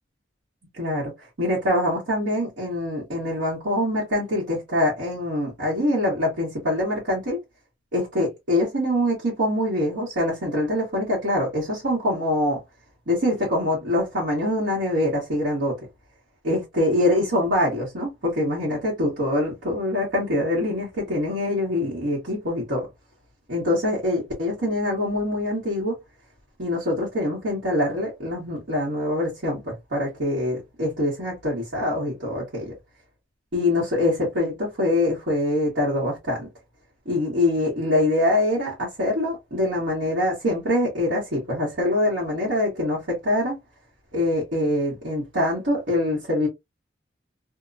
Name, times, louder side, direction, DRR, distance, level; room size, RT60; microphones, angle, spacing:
voice 1, 0.8-1.1 1.4-7.4 7.9-12.6 13.1-15.8 16.4-22.9 23.5-26.0 26.6-32.7 33.5-36.5 37.0-43.6 44.1-46.5, left 1 dB, 70° right, 1.2 m, -24 dB
2.8 x 2.2 x 2.5 m
head